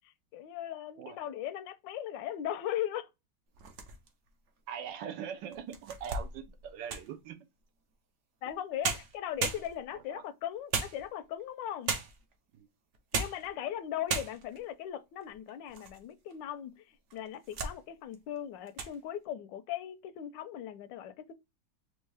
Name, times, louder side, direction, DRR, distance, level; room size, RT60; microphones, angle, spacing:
voice 1, 0.0-3.1 8.4-12.0 13.1-21.3, left 11 dB, 90° left, 1.3 m, -38 dB
sound 1, 3.5-4.3 4.9-5.0 5.5-7.2 8.5-8.6 8.8-10.0 10.7-11.4 11.9-12.3 12.9-13.5 13.8-13.9 14.1-14.6 15.2-16.0 16.3-16.4 17.1-17.8 18.1-18.4 18.7-19.0, right 4 dB, 55° right, 0.8 m, -36 dB
voice 2, 4.7-7.4 9.9-10.2 12.5-12.7, right 8 dB, 80° right, 1.4 m, -42 dB
4.5 x 2.9 x 3.3 m
omnidirectional pair, 1.9 m